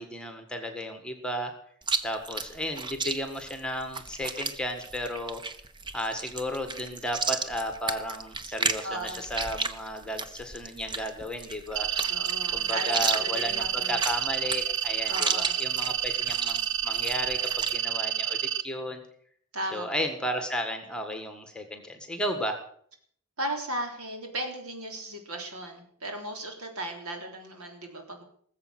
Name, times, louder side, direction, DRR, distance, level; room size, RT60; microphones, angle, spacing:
voice 1, 0.0-1.5 2.0-5.4 5.9-11.9 12.5-19.0 19.7-22.6, equal, 5° left, 6 dB, 1.6 m, -34 dB
Chewing mastication, 1.8-17.8, right 4 dB, 20° right, 0.8 m, -34 dB
voice 2, 8.8-9.2 12.1-14.0 15.1-15.5 19.5-19.9 23.4-28.2, right 1 dB, 80° right, 3 dB, 3.7 m, -36 dB
sound 1, 11.8-18.6, right 10 dB, 55° right, 0.7 m, -29 dB
19.5 x 7.5 x 7.8 m, 0.62 s
head